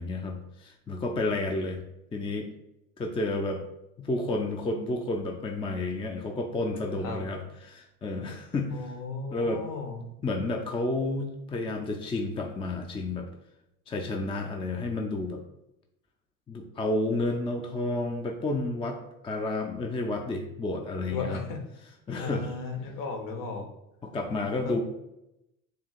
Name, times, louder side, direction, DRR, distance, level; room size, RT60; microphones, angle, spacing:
voice 1, 0.0-1.8 2.1-2.5 3.0-3.6 4.0-8.9 9.3-9.6 10.2-13.3 13.9-15.4 16.5-21.4 22.1-22.5 24.0-24.8, left 2 dB, 15° left, 4 dB, 0.5 m, -31 dB
voice 2, 8.7-10.0 21.1-21.6 22.2-23.6 24.6-24.8, left 4 dB, 50° left, 3 dB, 1.2 m, -35 dB
7.1 x 2.8 x 2.5 m, 0.88 s
hypercardioid pair, 75°, 41 cm